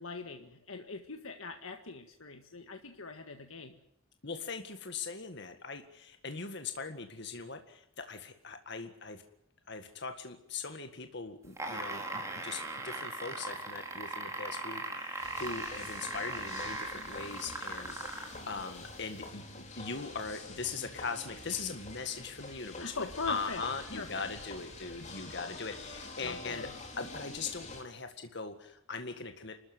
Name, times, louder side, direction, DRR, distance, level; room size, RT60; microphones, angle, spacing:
voice 1, 0.0-3.8 22.8-23.6 23.9-24.2 26.2-26.7, left 4 dB, 85° left, 5 dB, 1.8 m, -41 dB
voice 2, 4.2-9.2 9.7-19.4 19.8-26.7 27.0-29.6, left 4 dB, 55° left, 6 dB, 1.9 m, -40 dB
sound 1, 11.4-18.4 19.2-19.3, right 2 dB, 15° right, 4.5 m, -39 dB
sound 2, 15.2-27.8, left 2 dB, 35° left, 4.0 m, -46 dB
29.5 x 13.5 x 9.5 m, 0.76 s
head